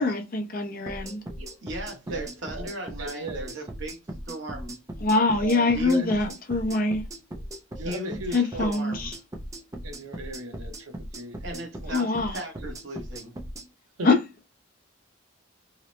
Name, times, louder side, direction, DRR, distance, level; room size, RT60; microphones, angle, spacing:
voice 1, 0.0-1.2 5.0-7.0 8.3-9.1 11.9-12.4 14.0-14.2, left 3 dB, 40° left, 0.5 m, -24 dB
sound 1, 0.9-13.7, right 1 dB, 15° right, 0.3 m, -38 dB
voice 2, 1.6-4.0 4.3-4.8 5.7-6.2 7.8-9.1 11.4-13.3, right 1 dB, 60° right, 0.9 m, -37 dB
voice 3, 3.0-3.6 5.1-6.1 7.8-8.8 9.8-12.0 12.6-12.7 14.0-14.1, right 1 dB, 90° right, 0.7 m, -38 dB
2.8 x 2.0 x 3.0 m
head